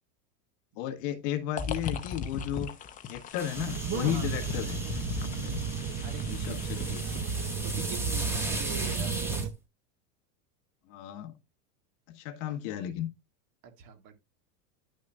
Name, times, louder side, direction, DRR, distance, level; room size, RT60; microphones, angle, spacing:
voice 1, 0.7-2.7 3.1-4.8 5.2-5.6 6.3-7.0 10.9-11.3 12.1-13.1, left 11 dB, 45° left, 1.4 m, -34 dB
sound 1, 1.6-7.5, left 5 dB, 15° left, 0.6 m, -39 dB
sound 2, 3.4-9.5, equal, 5° right, 1.7 m, -38 dB
sound 3, 3.5-9.5, right 6 dB, 25° right, 0.7 m, -33 dB
voice 2, 7.6-9.4 12.5-12.6 13.6-14.1, right 7 dB, 40° right, 2.1 m, -44 dB
11.0 x 6.3 x 2.4 m
supercardioid pair, 145°, 49 cm